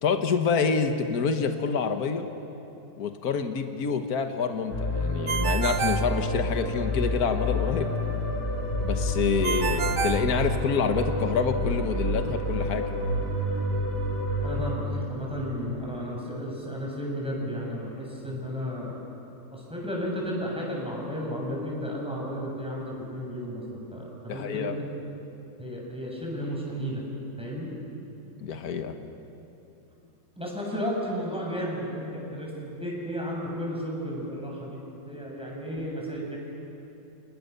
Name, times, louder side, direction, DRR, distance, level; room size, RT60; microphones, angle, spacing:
voice 1, 0.0-2.3 3.0-7.9 8.8-12.9 24.3-24.7 28.4-28.9, left 6 dB, 60° left, 6 dB, 1.8 m, -27 dB
sound 1, 4.7-14.6, left 1 dB, 30° left, 6.1 m, -28 dB
Ringtone, 5.3-6.9 9.4-11.1, right 6 dB, 75° right, 1.9 m, -30 dB
voice 2, 14.4-18.9 19.5-24.7 25.6-27.0 27.4-27.7 30.4-34.8 35.1-36.4, equal, 5° right, -3 dB, 6.8 m, -33 dB
29.5 x 28.5 x 6.8 m, 2.9 s
omnidirectional pair, 1.9 m